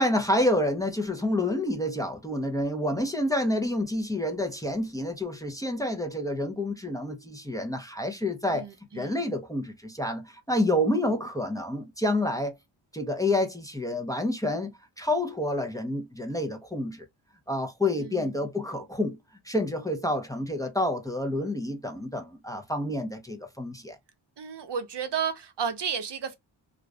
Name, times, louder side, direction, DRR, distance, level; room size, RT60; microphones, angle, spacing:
voice 1, 0.0-8.7 8.9-12.6 12.9-14.7 15.0-17.0 17.5-19.2 19.4-24.0, left 1 dB, 5° left, 0.7 m, -28 dB
voice 2, 8.5-9.2 18.0-18.5 24.4-26.3, right 7 dB, 60° right, 0.8 m, -33 dB
2.5 x 2.4 x 3.3 m
cardioid pair, 60°, 48 cm